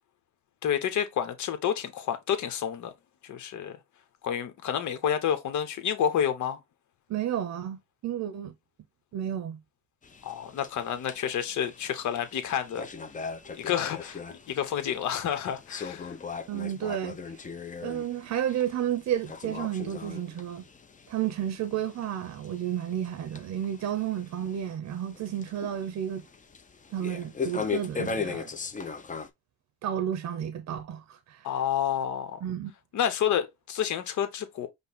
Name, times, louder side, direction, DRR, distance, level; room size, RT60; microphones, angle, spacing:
voice 1, 0.6-2.9 3.2-3.8 4.2-6.6 10.2-12.9 13.5-16.1 31.4-32.4 32.9-34.7, left 9 dB, 70° left, 1.1 m, -29 dB
voice 2, 7.1-8.5 9.1-9.6 16.5-17.2 17.8-20.7 21.1-26.2 26.9-28.5 29.8-31.5 32.4-32.7, right 10 dB, 65° right, 0.8 m, -32 dB
sound 1, 10.0-29.3, left 5 dB, 25° left, 0.7 m, -39 dB
5.3 x 2.2 x 4.0 m
cardioid pair, 90°, 30 cm